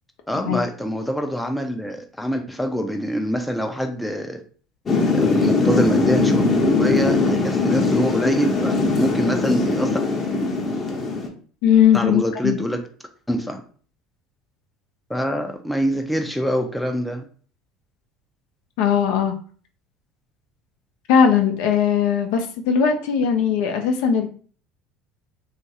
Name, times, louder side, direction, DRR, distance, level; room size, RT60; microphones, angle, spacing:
voice 1, 0.3-4.4 5.1-6.5 6.8-10.0 11.9-12.8 13.3-13.6 15.1-17.2, equal, 5° left, 0.5 m, -25 dB
Thunder / Rain, 4.9-11.3, left 3 dB, 35° left, 0.7 m, -20 dB
voice 2, 11.6-12.6 18.8-19.4 21.1-24.3, left 7 dB, 65° left, 0.4 m, -19 dB
3.0 x 2.4 x 2.7 m
hypercardioid pair, 65°, 0 cm